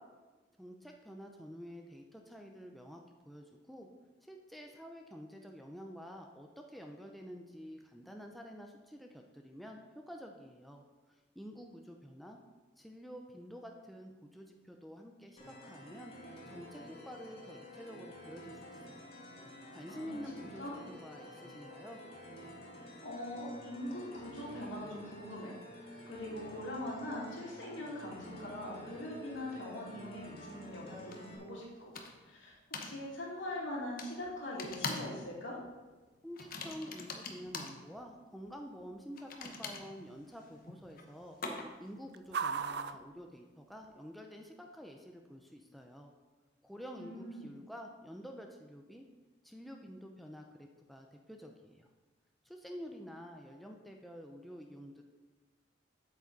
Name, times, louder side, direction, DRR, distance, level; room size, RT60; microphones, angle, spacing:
voice 1, 0.6-3.9 4.3-10.8 11.4-12.4 12.8-16.1 16.5-19.1 19.7-22.0 36.2-41.4 41.8-46.1 46.6-49.1 49.4-51.9 52.4-55.0, equal, ahead, 2 dB, 0.6 m, -49 dB
sound 1, 15.4-31.4, equal, 30° left, 2.0 m, -50 dB
voice 2, 19.9-20.8 23.0-25.5 26.1-31.6 32.3-35.6 47.0-47.5, left 1 dB, 85° left, -5 dB, 2.9 m, -42 dB
sound 2, 29.3-44.2, right 6 dB, 60° right, 0.4 m, -48 dB
sound 3, 31.1-31.2 31.9-32.3 32.7-32.9 34.0-34.1 34.6-35.2 35.4-35.7 36.4-37.8 39.2-41.9, left 4 dB, 50° left, 1.0 m, -42 dB
8.1 x 7.6 x 4.1 m, 1.3 s
head